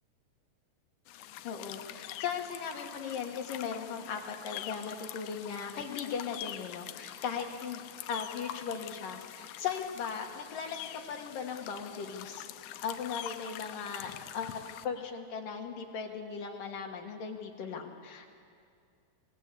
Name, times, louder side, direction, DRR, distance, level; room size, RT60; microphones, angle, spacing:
sound 1, 1.1-14.9, left 13 dB, 75° left, 2.6 m, -45 dB
voice 1, 1.4-12.5 12.8-14.6 14.8-18.3, left 6 dB, 60° left, 2 dB, 2.6 m, -38 dB
25.0 x 19.0 x 8.2 m, 2.4 s
omnidirectional pair, 5.2 m